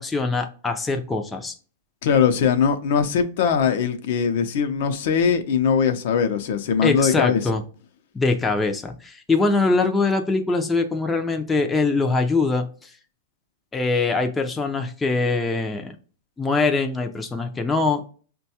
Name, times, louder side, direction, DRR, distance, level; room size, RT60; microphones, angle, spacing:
voice 1, 0.0-1.5 6.8-7.6 8.1-12.9 13.7-16.0 16.4-18.0, left 3 dB, 10° left, 0.4 m, -23 dB
voice 2, 2.0-7.5, left 7 dB, 60° left, 0.6 m, -21 dB
5.2 x 2.2 x 2.7 m
hypercardioid pair, 140°, 0 cm